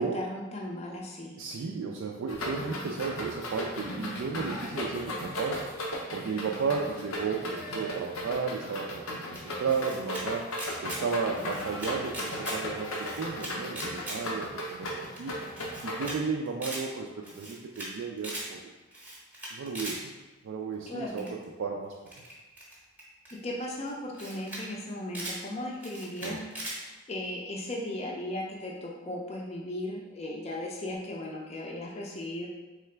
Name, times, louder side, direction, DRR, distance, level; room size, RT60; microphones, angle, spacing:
voice 1, 0.0-1.4 20.9-21.3 23.4-26.7 27.1-32.5, left 1 dB, 30° left, -2 dB, 0.5 m, -37 dB
voice 2, 1.4-5.6 6.1-10.5 10.8-15.3 15.8-18.6 19.5-20.1 20.4-21.9 26.2-26.4, right 5 dB, 70° right, 0 dB, 0.3 m, -34 dB
sound 1, 2.3-16.1, left 1 dB, 90° left, 0.7 m, -36 dB
Camera, 9.4-10.2 10.5-11.0 11.3-12.6 12.9-14.2 14.5-14.6 14.9-15.0 15.2-15.3 15.6-16.2 16.5-16.8 17.2-17.9 18.2-18.5 18.9-20.0 21.2-21.4 22.1-23.3 23.9-24.0 24.1-24.6 24.9-25.4 25.8-26.8, right 1 dB, 10° right, 0.8 m, -39 dB
3.7 x 3.2 x 3.3 m, 1.2 s
head